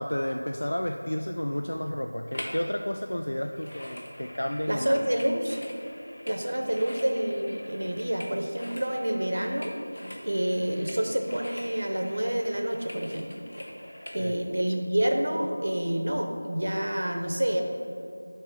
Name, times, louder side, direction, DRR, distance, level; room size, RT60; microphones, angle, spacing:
voice 1, 0.0-5.0 14.2-14.3, left 1 dB, 85° left, 4 dB, 0.4 m, -31 dB
sound 1, 2.3-2.7 2.9-14.2 14.7-14.8, equal, 70° left, 1.1 m, -43 dB
voice 2, 4.7-5.6 6.3-9.8 10.2-13.4 14.1-17.6, right 1 dB, 55° right, 3 dB, 0.6 m, -28 dB
5.4 x 4.2 x 6.0 m, 2.5 s
figure-of-eight pair, 180°, 0 cm